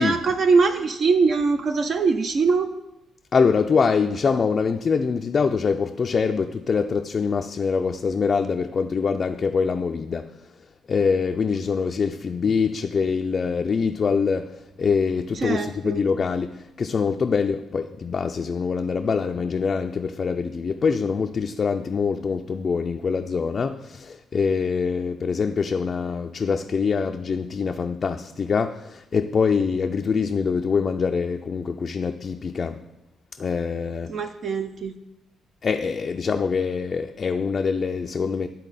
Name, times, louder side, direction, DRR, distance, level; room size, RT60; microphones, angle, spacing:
voice 1, 0.0-2.7 15.3-16.0 34.1-35.0, right 4 dB, 55° right, 0.5 m, -22 dB
voice 2, 3.3-10.3 10.9-32.8 33.4-34.1 35.6-38.5, left 5 dB, 45° left, 0.3 m, -24 dB
11.5 x 3.9 x 4.1 m
cardioid pair, 90°, 0 cm